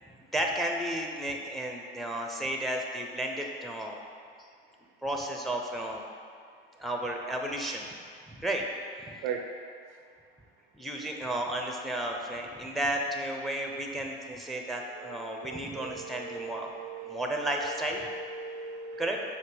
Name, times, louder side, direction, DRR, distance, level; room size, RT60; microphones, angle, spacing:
voice 1, 0.0-4.0 5.0-6.0 6.8-7.9 8.3-8.6 9.1-9.2 10.7-16.7 17.0-18.1 19.0-19.2, right 1 dB, ahead, 1 dB, 0.7 m, -33 dB
voice 2, 15.0-19.2, right 5 dB, 60° right, 4 dB, 0.7 m, -39 dB
7.8 x 2.8 x 5.4 m, 2.2 s
figure-of-eight pair, 60°, 29 cm